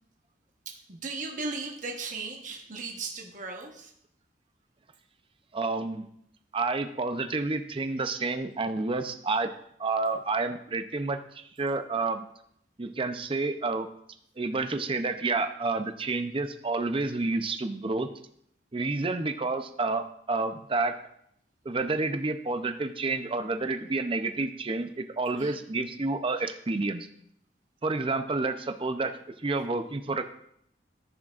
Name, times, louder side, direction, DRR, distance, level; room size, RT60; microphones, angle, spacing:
voice 1, 0.7-3.9 25.3-25.6, right 3 dB, 45° right, 1 dB, 1.1 m, -37 dB
voice 2, 5.5-6.1 6.5-9.5 9.8-12.3 12.8-13.9 14.4-18.1 18.7-20.9 21.6-27.1 27.8-30.3, right 3 dB, 30° right, 8 dB, 0.6 m, -29 dB
14.5 x 6.2 x 2.5 m, 0.71 s
head